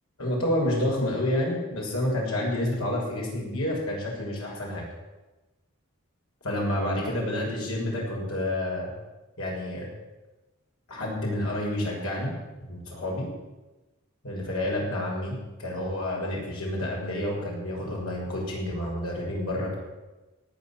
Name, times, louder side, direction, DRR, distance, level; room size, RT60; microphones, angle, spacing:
voice 1, 0.2-4.9 6.4-8.9 9.4-9.9 10.9-12.3 12.6-13.3 14.2-19.8, left 1 dB, 80° left, -2 dB, 6.6 m, -29 dB
17.5 x 9.4 x 8.9 m, 1.1 s
head